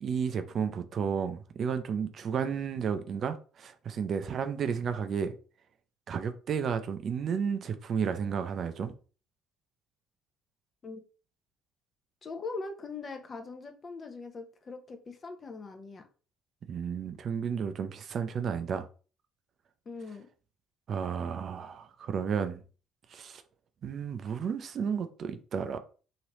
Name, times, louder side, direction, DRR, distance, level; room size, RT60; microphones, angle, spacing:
voice 1, 0.0-5.3 6.1-8.9 16.7-18.9 20.9-22.6 23.1-23.4 23.8-25.8, right 6 dB, 50° right, 0.4 m, -32 dB
voice 2, 12.2-16.1 19.9-20.3, left 4 dB, 40° left, 0.7 m, -41 dB
3.1 x 2.7 x 3.0 m
hypercardioid pair, 65°, 0 cm